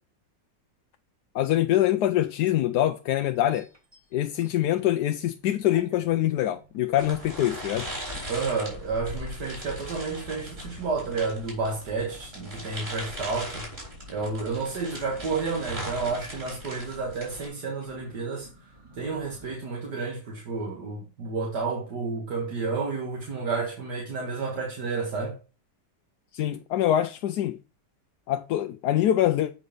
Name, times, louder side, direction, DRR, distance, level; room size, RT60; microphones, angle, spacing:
voice 1, 1.3-3.7 4.1-7.9 26.3-27.6 28.3-29.5, left 12 dB, 75° left, 1.1 m, -24 dB
sound 1, 3.2-5.3 5.6-19.6, left 1 dB, 15° right, 1.7 m, -50 dB
sound 2, 7.0-17.5, equal, 35° right, 4.3 m, -39 dB
voice 2, 8.3-13.6 14.1-18.5 19.0-25.4, right 4 dB, 65° right, 2.3 m, -31 dB
8.4 x 5.2 x 5.1 m
omnidirectional pair, 1.9 m